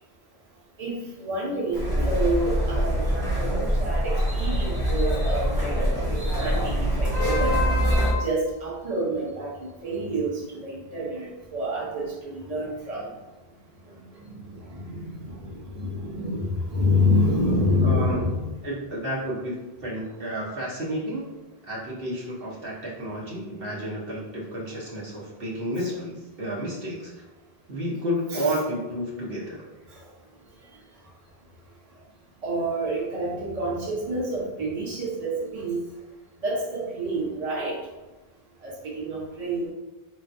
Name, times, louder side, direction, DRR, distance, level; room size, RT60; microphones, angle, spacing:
voice 1, 0.8-7.6 8.2-13.1 14.2-18.4 28.3-28.5 32.4-35.8 36.4-37.8 38.6-39.7, equal, 40° right, -5 dB, 1.1 m, -28 dB
sound 1, 1.7-8.1, equal, 85° right, 1.5 m, -24 dB
voice 2, 17.8-18.2 18.6-19.5 19.8-21.3 21.6-27.1 27.7-29.6, equal, 65° right, -5 dB, 1.2 m, -31 dB
4.6 x 3.7 x 2.6 m, 1.1 s
omnidirectional pair, 1.1 m